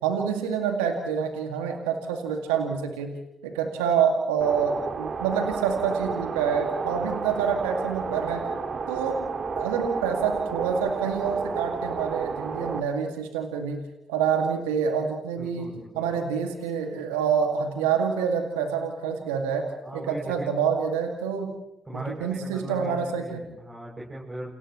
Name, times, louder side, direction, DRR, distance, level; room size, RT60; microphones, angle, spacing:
voice 1, 0.0-3.1 3.4-8.5 8.9-9.2 9.6-13.8 14.1-19.7 19.9-21.5 21.9-23.4, right 7 dB, 85° right, 4 dB, 2.1 m, -27 dB
sound 1, 4.4-12.8, right 5 dB, 50° right, 2.0 m, -31 dB
voice 2, 15.4-16.1 19.8-20.6 21.9-24.5, right 1 dB, 25° right, -3 dB, 7.2 m, -38 dB
29.0 x 29.0 x 3.1 m, 0.89 s
hypercardioid pair, 40°, 0 cm